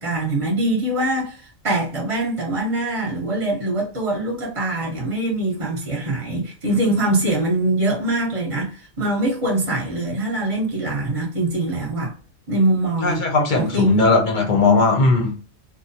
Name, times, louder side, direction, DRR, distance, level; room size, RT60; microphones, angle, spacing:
voice 1, 0.0-12.1 12.5-13.2 13.5-14.1, right 2 dB, 30° right, 0.8 m, -23 dB
voice 2, 13.0-15.3, left 3 dB, 50° left, 0.6 m, -18 dB
2.5 x 2.1 x 2.7 m
omnidirectional pair, 1.4 m